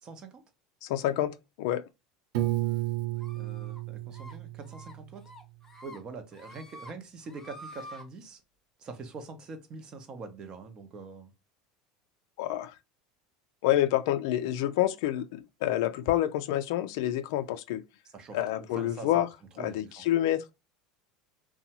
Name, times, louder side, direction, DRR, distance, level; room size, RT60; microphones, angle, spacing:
voice 1, 0.0-0.4 3.3-5.2 5.8-8.4 8.8-11.3 18.1-19.1 19.6-20.1, right 4 dB, 40° right, 0.7 m, -44 dB
voice 2, 0.8-1.8 12.4-12.7 13.6-17.8 18.3-19.3 19.6-20.4, left 13 dB, 75° left, 0.3 m, -28 dB
Piano, 2.3-5.3, right 16 dB, 80° right, 0.4 m, -32 dB
sound 1, 3.2-3.8 4.1-4.3 4.7-4.9 5.3-6.0 6.3-6.9 7.2-8.0, equal, 15° left, 0.8 m, -48 dB
2.7 x 2.2 x 2.8 m
supercardioid pair, 100°, 2 cm